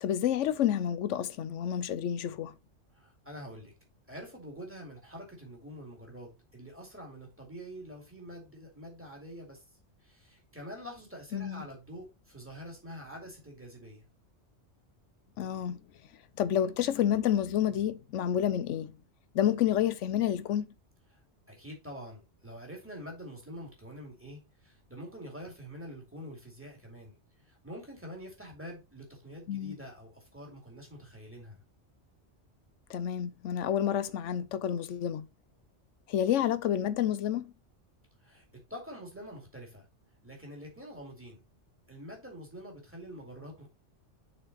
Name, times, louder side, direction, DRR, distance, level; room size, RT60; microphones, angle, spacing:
voice 1, 0.0-2.5 11.3-11.7 15.4-15.8 16.4-18.9 19.3-20.7 29.5-29.8 32.9-35.3 36.1-37.5, left 10 dB, 85° left, 1.0 m, -29 dB
voice 2, 2.9-3.7 4.1-9.6 10.0-14.1 21.1-21.2 21.5-27.1 27.5-31.6 38.2-39.9 40.2-41.4 41.9-43.7, equal, 10° right, 2.5 m, -46 dB
6.5 x 4.7 x 4.1 m
omnidirectional pair, 1.2 m